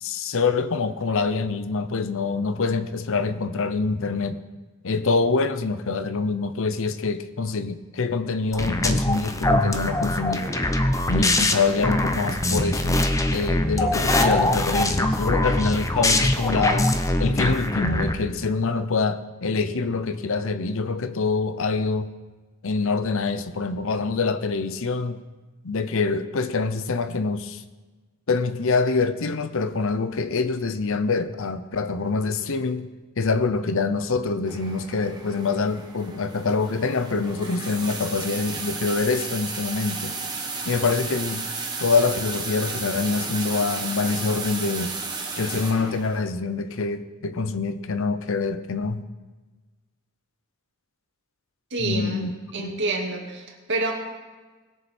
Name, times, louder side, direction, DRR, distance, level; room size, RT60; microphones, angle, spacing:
voice 1, 0.0-4.4 4.8-10.5 11.1-13.0 13.3-22.1 22.6-25.2 25.6-27.6 28.3-32.9 33.2-40.1 40.6-41.5 41.8-44.9 45.4-49.1 51.8-52.3 52.6-52.8, left 4 dB, 65° left, 11 dB, 0.7 m, -25 dB
sound 1, 8.5-18.1, left 1 dB, 15° left, 0.7 m, -23 dB
sound 2, 34.4-46.3, right 4 dB, 20° right, 1.5 m, -33 dB
voice 2, 51.7-52.2 52.5-53.9, right 2 dB, 55° right, 0 dB, 2.0 m, -28 dB
20.0 x 7.1 x 4.3 m, 1.3 s
head